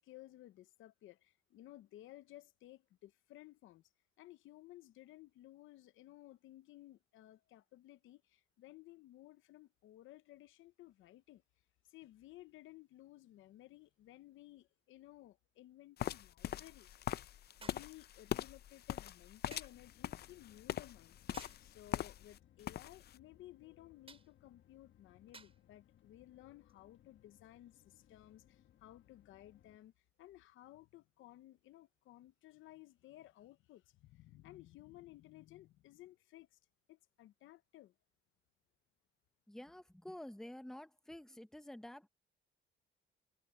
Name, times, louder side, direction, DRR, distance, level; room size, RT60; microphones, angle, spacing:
voice 1, 0.0-3.9 4.2-11.4 11.8-16.9 17.3-21.2 21.6-36.6 36.9-37.9, left 15 dB, 85° left, 0.9 m, -57 dB
sound 1, 13.8-13.9 17.6-18.0 19.5-19.8 21.3-21.7 24.1-24.3 25.3-25.6 26.7-26.8, right 4 dB, 30° right, 4.8 m, -56 dB
sound 2, 16.0-22.4 22.6-23.1, left 11 dB, 55° left, 0.5 m, -42 dB
sound 3, 19.7-29.8, left 11 dB, 70° left, 1.4 m, -67 dB
voice 2, 39.5-42.1, left 1 dB, ahead, 0.9 m, -50 dB
cardioid pair, 90°, 20 cm